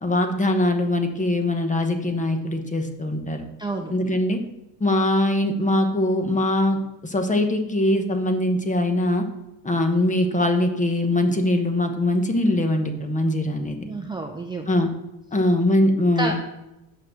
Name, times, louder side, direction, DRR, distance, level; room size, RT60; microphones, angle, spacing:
voice 1, 0.0-3.4 3.9-4.4 4.8-9.2 9.6-13.9 14.7-14.9 15.3-16.4, left 1 dB, 20° left, 6 dB, 0.9 m, -22 dB
voice 2, 3.6-3.9 13.8-14.7 16.2-16.4, right 2 dB, 10° right, 2 dB, 0.5 m, -29 dB
6.1 x 5.7 x 6.3 m, 0.95 s
cardioid pair, 125°, 40 cm